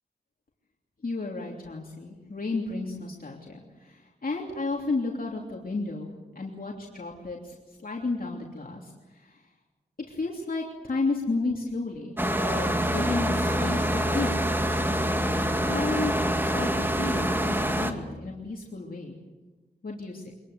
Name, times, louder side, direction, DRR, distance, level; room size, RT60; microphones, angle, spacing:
voice 1, 1.0-7.6 7.8-9.4 10.1-14.5 15.2-16.1 16.5-19.2 19.8-20.3, left 3 dB, 60° left, -1 dB, 3.2 m, -33 dB
sound 1, 12.2-17.9, equal, 15° right, 2.1 m, -26 dB
24.5 x 21.0 x 8.2 m, 1.2 s
wide cardioid pair, 85°, 17 cm